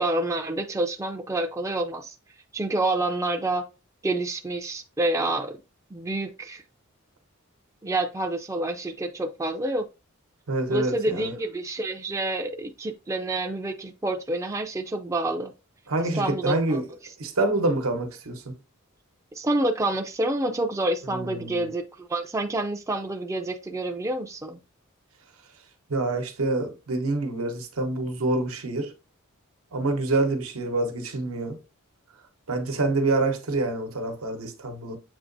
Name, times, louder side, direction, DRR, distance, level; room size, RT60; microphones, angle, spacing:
voice 1, 0.0-2.1 2.5-3.6 4.0-5.5 5.9-6.6 7.8-9.9 10.7-15.5 16.1-16.8 19.4-24.6, right 2 dB, 15° right, 0.4 m, -28 dB
voice 2, 10.5-11.3 15.9-16.8 17.2-18.5 21.0-21.7 25.9-28.9 29.7-31.6 32.5-35.0, right 2 dB, 85° right, 1.0 m, -26 dB
7.2 x 2.9 x 2.6 m
head